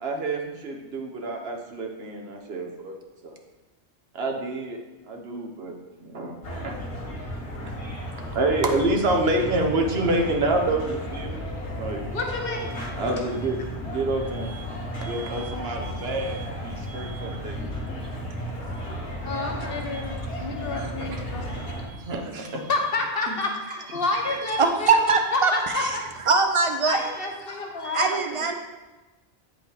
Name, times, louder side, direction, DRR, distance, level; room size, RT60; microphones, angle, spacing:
voice 1, 0.0-3.0 3.2-3.3 4.1-4.8 5.1-5.7 6.0-6.8 7.6-7.7 8.3-11.5 11.7-12.0 13.0-14.6 15.0-17.6 20.7-21.1 21.6-21.7 22.0-22.6 23.3-23.4, right 2 dB, 60° right, 2 dB, 1.1 m, -28 dB
sound 1, 6.4-21.9, equal, 70° left, 2.0 m, -34 dB
voice 2, 12.1-12.9 14.4-14.6 15.0-15.5 16.0-16.4 16.9-17.4 18.9-20.1 20.4-22.0 22.6-26.0 26.8-28.5, left 3 dB, 55° left, 2 dB, 1.2 m, -30 dB
voice 3, 24.6-27.0 27.9-28.5, right 4 dB, 35° right, 5 dB, 0.6 m, -22 dB
8.5 x 4.8 x 4.0 m, 1.1 s
omnidirectional pair, 1.2 m